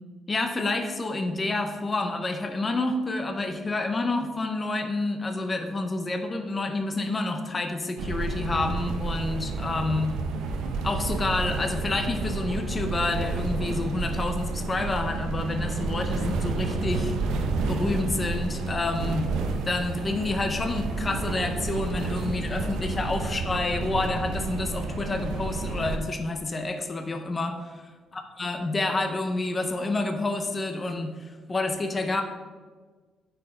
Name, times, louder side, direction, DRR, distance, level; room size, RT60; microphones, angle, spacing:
voice 1, 0.3-10.1 10.8-17.1 17.7-19.3 19.7-27.8 28.4-32.2, left 2 dB, 20° left, 5 dB, 0.6 m, -28 dB
sound 1, 8.0-26.0, right 3 dB, 90° right, 0.7 m, -30 dB
8.8 x 4.5 x 4.3 m, 1.4 s
cardioid pair, 155°, 0 cm